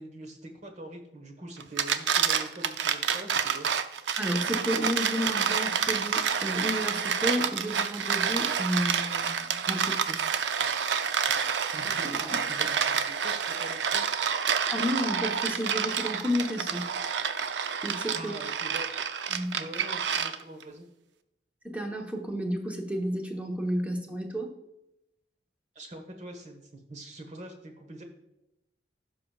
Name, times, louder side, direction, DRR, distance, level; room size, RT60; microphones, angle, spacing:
voice 1, 0.0-3.7 11.7-14.0 18.2-18.9 19.5-20.9 25.7-28.0, right 1 dB, 40° right, 5 dB, 1.3 m, -44 dB
sound 1, 1.6-20.6, right 7 dB, 85° right, 0.5 m, -28 dB
voice 2, 4.2-10.3 12.2-12.4 14.7-16.9 17.8-18.3 19.3-19.6 21.6-24.5, equal, 10° right, 2 dB, 1.1 m, -31 dB
15.5 x 6.0 x 2.4 m, 0.88 s
head